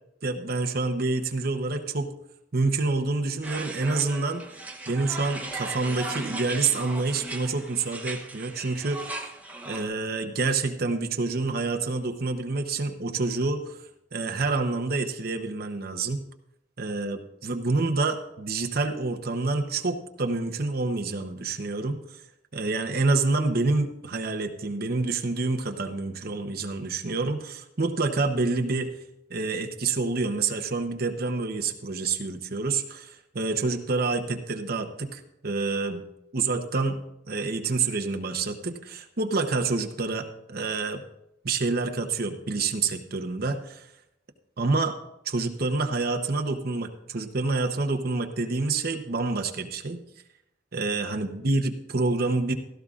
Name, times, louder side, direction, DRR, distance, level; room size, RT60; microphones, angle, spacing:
voice 1, 0.2-2.1 2.5-4.4 4.9-9.2 9.6-13.8 14.1-16.2 16.8-22.0 22.5-28.9 29.3-36.0 36.3-37.0 37.3-41.0 41.4-43.9 44.6-44.9 45.2-50.0 50.7-52.5, right 3 dB, 55° right, 4 dB, 0.9 m, -27 dB
sound 1, 3.4-9.8, right 2 dB, 10° right, 1.0 m, -37 dB
16.0 x 13.0 x 2.5 m, 0.82 s
head